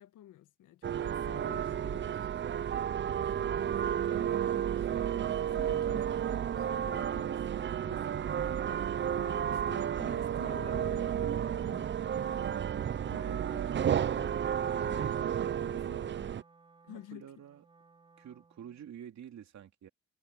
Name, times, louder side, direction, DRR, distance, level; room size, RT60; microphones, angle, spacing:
voice 1, 0.0-5.3 5.5-16.3 16.8-17.3, left 12 dB, 85° left, 1.7 m, -53 dB
sound 1, 0.8-16.4, right 9 dB, 40° right, 0.6 m, -32 dB
Wind instrument woodwind instrument, 12.9-18.9, right 4 dB, 15° right, 2.7 m, -62 dB
voice 2, 16.9-17.6 18.2-19.9, right 9 dB, 65° right, 2.8 m, -49 dB
cardioid pair, 90°, 30 cm